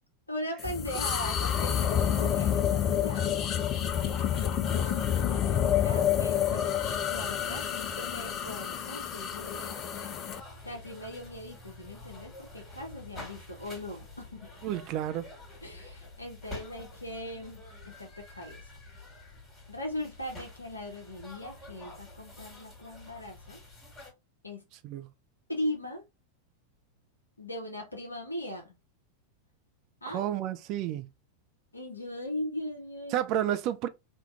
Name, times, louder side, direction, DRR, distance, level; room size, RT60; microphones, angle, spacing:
voice 1, 0.3-3.3 3.9-6.7 7.1-10.2 10.6-14.5 15.6-18.6 19.7-23.6 24.4-24.6 25.5-26.0 27.4-28.7 30.0-30.2 31.7-33.3, left 1 dB, 80° left, 0.7 m, -39 dB
sound 1, 0.6-10.4, left 9 dB, 30° left, 0.4 m, -29 dB
Wind instrument woodwind instrument, 3.7-7.8, left 2 dB, 85° right, 1.7 m, -47 dB
sound 2, 6.8-24.1, left 2 dB, 15° left, 1.6 m, -48 dB
voice 2, 14.6-15.3 24.8-25.1 30.1-31.1 33.1-33.9, right 11 dB, 40° right, 0.4 m, -31 dB
3.5 x 2.3 x 2.5 m
figure-of-eight pair, 90°, 0 cm